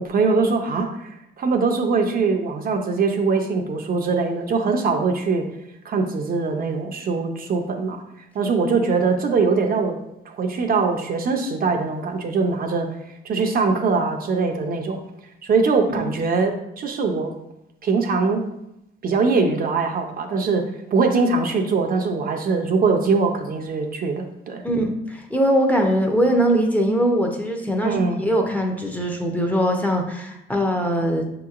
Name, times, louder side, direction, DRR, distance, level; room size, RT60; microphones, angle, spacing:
voice 1, 0.0-5.4 5.8-8.0 8.3-10.0 10.3-12.9 13.2-15.0 15.4-17.3 17.8-18.4 19.0-20.6 20.9-24.6 27.8-28.2, right 4 dB, 50° right, 4 dB, 0.5 m, -22 dB
voice 2, 24.6-31.3, equal, 10° left, 1 dB, 0.6 m, -21 dB
5.8 x 2.9 x 2.4 m, 0.83 s
cardioid pair, 90°, 20 cm